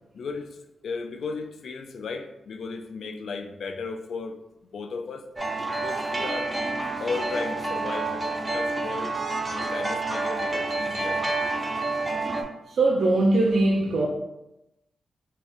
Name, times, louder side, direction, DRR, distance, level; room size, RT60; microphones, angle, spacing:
voice 1, 0.1-4.4 4.7-5.3 5.7-6.5 7.0-8.3 8.5-9.2 9.5-11.2, left 4 dB, 80° left, 0.4 m, -35 dB
sound 1, 5.4-12.4, right 3 dB, 20° right, 0.5 m, -28 dB
voice 2, 12.7-14.1, right 2 dB, 70° right, 0.4 m, -21 dB
3.0 x 2.8 x 3.5 m
cardioid pair, 90°, 0 cm